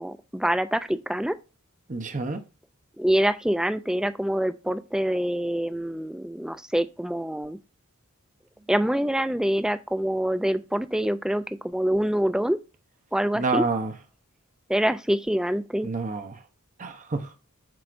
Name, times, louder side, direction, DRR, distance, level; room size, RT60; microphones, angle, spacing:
voice 1, 0.0-1.4 3.0-7.6 8.7-12.6 13.1-13.6 14.7-15.9, right 1 dB, 5° right, 0.3 m, -25 dB
voice 2, 1.9-2.4 13.3-13.9 15.8-16.4 16.8-17.3, right 3 dB, 35° right, 0.8 m, -28 dB
7.7 x 5.9 x 2.5 m
head